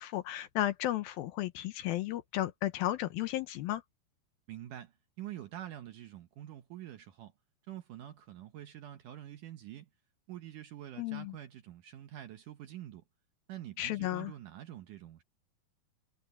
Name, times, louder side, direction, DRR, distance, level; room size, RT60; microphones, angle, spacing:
voice 1, 0.0-3.8 11.0-11.3 13.8-14.3, left 14 dB, 75° left, 2.4 m, -34 dB
voice 2, 4.5-7.3 7.7-9.9 10.3-13.0 13.5-15.2, right 12 dB, 70° right, 2.1 m, -46 dB
omnidirectional pair, 4.7 m